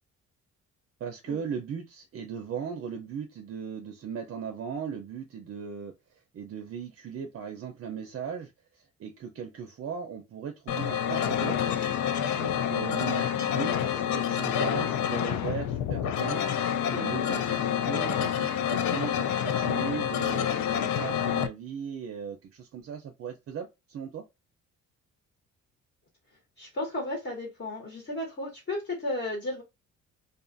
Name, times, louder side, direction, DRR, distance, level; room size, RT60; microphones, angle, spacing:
voice 1, 1.0-5.9 6.3-11.8 12.4-16.4 16.9-24.2, right 7 dB, 50° right, 0.5 m, -38 dB
sound 1, 10.7-21.5, left 9 dB, 70° left, 0.5 m, -28 dB
voice 2, 26.6-29.6, left 1 dB, 40° left, 1.3 m, -33 dB
2.5 x 2.4 x 2.5 m
cardioid pair, 90°, 30 cm